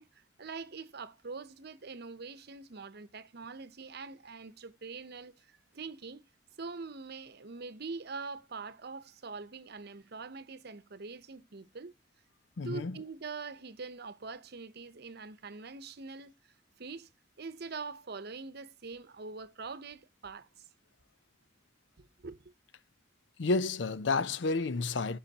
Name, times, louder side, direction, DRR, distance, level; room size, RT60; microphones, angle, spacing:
voice 1, 0.0-6.2 6.6-11.9 12.6-16.3 16.8-17.1 17.4-20.7 22.0-22.4, right 4 dB, 60° right, 0.8 m, -44 dB
voice 2, 12.6-13.0 23.4-25.2, left 3 dB, 70° left, 0.6 m, -30 dB
15.0 x 5.6 x 2.9 m
head